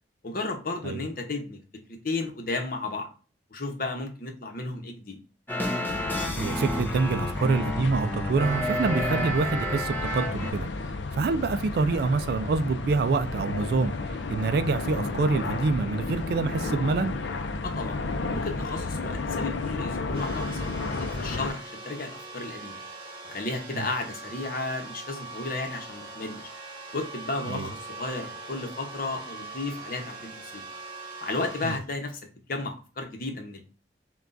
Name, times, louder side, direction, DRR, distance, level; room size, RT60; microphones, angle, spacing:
voice 1, 0.2-1.6 1.9-3.1 3.5-5.2 17.6-18.0 18.3-22.8 23.2-26.5 26.9-30.6 31.2-32.2 32.5-33.6, left 3 dB, 50° left, 0.9 m, -33 dB
sound 1, 5.5-10.5, equal, 10° left, 0.7 m, -31 dB
sound 2, 5.9-21.5, left 3 dB, 80° left, 0.5 m, -32 dB
voice 2, 6.4-10.7 11.1-13.9 14.3-17.2 23.7-23.9 27.5-27.7 31.6-31.7, right 4 dB, 60° right, 0.3 m, -26 dB
sound 3, 20.1-31.8, right 3 dB, 25° right, 1.4 m, -41 dB
5.8 x 2.3 x 2.6 m
head